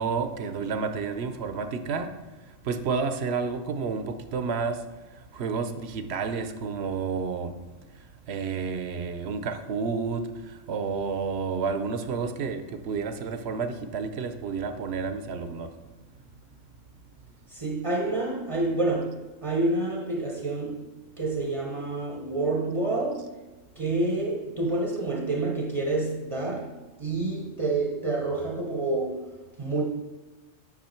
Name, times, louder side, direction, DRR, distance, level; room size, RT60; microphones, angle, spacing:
voice 1, 0.0-7.5 7.9-15.8, right 5 dB, 60° right, 0.9 m, -31 dB
voice 2, 17.5-23.5 23.7-29.8, right 2 dB, 30° right, 0.8 m, -28 dB
8.7 x 6.0 x 4.4 m
omnidirectional pair, 1.4 m